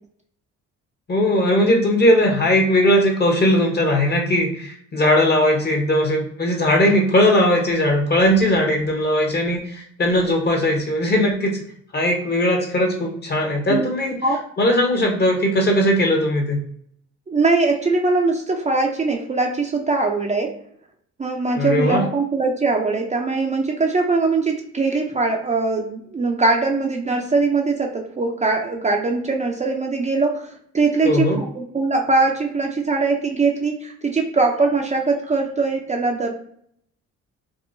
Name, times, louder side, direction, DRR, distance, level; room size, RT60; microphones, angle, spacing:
voice 1, 1.1-11.6 11.9-14.2 14.6-16.6 21.6-22.1 31.0-31.4, left 1 dB, 35° left, 2 dB, 0.9 m, -19 dB
voice 2, 17.3-20.5 21.2-36.3, right 3 dB, 25° right, 1 dB, 0.5 m, -21 dB
3.6 x 2.2 x 2.5 m, 0.67 s
cardioid pair, 90°, 30 cm